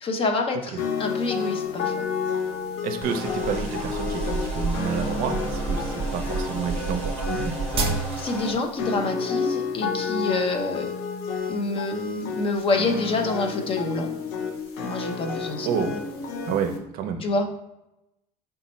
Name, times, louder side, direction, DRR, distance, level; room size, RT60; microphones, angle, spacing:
voice 1, 0.0-2.0 7.8-10.9 11.5-14.1 14.8-15.7 17.2-17.5, left 2 dB, 30° left, 4 dB, 0.5 m, -27 dB
sound 1, 0.8-16.8, left 5 dB, 70° left, 0.7 m, -30 dB
voice 2, 2.8-7.6 15.7-16.0 16.5-17.2, right 6 dB, 60° right, 6 dB, 0.5 m, -29 dB
sound 2, 3.0-8.5, equal, 10° left, 1.0 m, -37 dB
sound 3, 3.4-8.4, right 5 dB, 35° right, 0.9 m, -30 dB
4.1 x 2.2 x 4.1 m, 0.89 s
cardioid pair, 145°, 17 cm